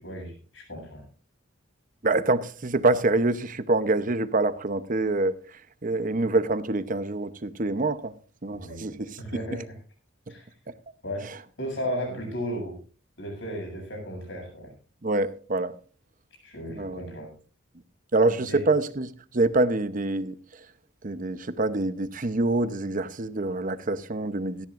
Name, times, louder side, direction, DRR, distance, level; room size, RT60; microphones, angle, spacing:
voice 1, 0.0-1.0 8.5-8.9 9.2-9.8 10.3-10.5 11.0-12.8 13.2-14.7 16.4-17.3 18.5-18.6, equal, 60° left, 7.7 m, -35 dB
voice 2, 2.0-8.1 8.4-9.2 10.3-10.4 10.7-10.8 15.0-15.8 16.7-17.0 18.1-20.6 21.0-24.7, right 2 dB, 40° right, 0.8 m, -26 dB
17.5 x 13.5 x 2.6 m
head